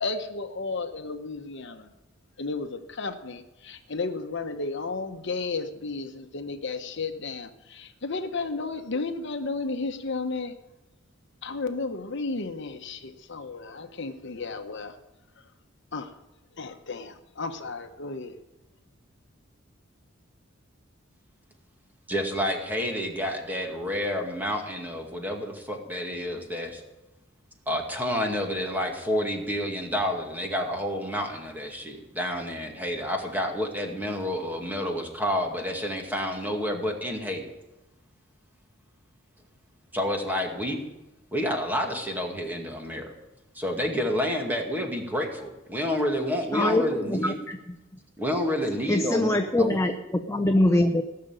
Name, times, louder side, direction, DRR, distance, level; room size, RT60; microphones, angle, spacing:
voice 1, 0.0-1.9 2.4-10.5 11.4-15.0 15.9-16.1 16.6-18.4, left 3 dB, 65° left, 7 dB, 1.0 m, -33 dB
voice 2, 22.1-26.8 27.7-37.4 39.9-40.8 41.3-43.1 43.5-47.4 48.2-49.8, equal, 10° right, 2 dB, 2.1 m, -29 dB
voice 3, 46.5-47.6 48.9-51.0, left 1 dB, 15° left, 5 dB, 0.8 m, -23 dB
17.5 x 6.8 x 9.1 m, 1.0 s
head